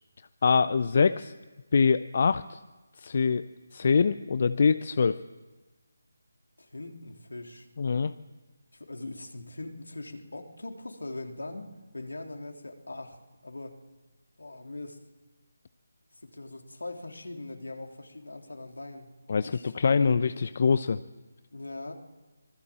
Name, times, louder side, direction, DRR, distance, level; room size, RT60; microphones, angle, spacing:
voice 1, 0.4-1.3 1.7-2.6 3.0-3.4 3.7-5.2 7.8-8.1 19.3-21.0, left 5 dB, 50° left, 13 dB, 0.7 m, -24 dB
voice 2, 6.6-7.7 8.7-13.2 13.4-13.8 14.4-15.0 16.2-19.2 19.4-20.2 21.5-21.9, left 2 dB, 80° left, 3 dB, 3.5 m, -41 dB
26.0 x 20.5 x 7.5 m, 1.2 s
figure-of-eight pair, 155°, 0 cm